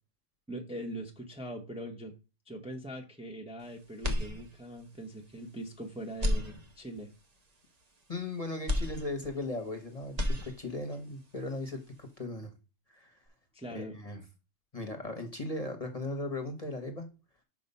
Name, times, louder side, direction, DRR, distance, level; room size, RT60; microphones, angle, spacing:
voice 1, 0.5-2.1 2.5-7.1 13.5-14.0, right 1 dB, 5° right, 1 dB, 0.9 m, -42 dB
sound 1, 4.0-4.9 5.4-5.5 6.1-7.2 8.7-9.8 10.0-11.0, left 1 dB, 35° right, 0.9 m, -33 dB
voice 2, 8.1-12.5 12.9-13.2 13.7-14.2 14.7-17.1, left 2 dB, 30° left, 5 dB, 1.1 m, -37 dB
5.9 x 4.5 x 5.4 m, 0.31 s
omnidirectional pair, 1.3 m